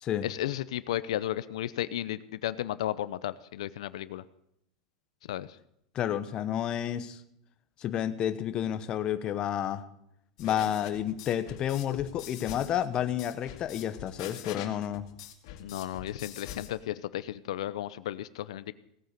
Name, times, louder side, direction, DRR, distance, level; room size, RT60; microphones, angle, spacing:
voice 1, 0.2-4.2 5.3-5.5 15.6-18.7, left 13 dB, 90° left, 15 dB, 0.7 m, -34 dB
voice 2, 5.9-7.2 7.8-9.8 10.4-15.1, left 10 dB, 25° left, 10 dB, 0.9 m, -30 dB
sound 1, 10.4-16.7, left 11 dB, 60° left, 2.3 m, -44 dB
17.5 x 9.2 x 6.7 m, 0.76 s
supercardioid pair, 165°, 3 cm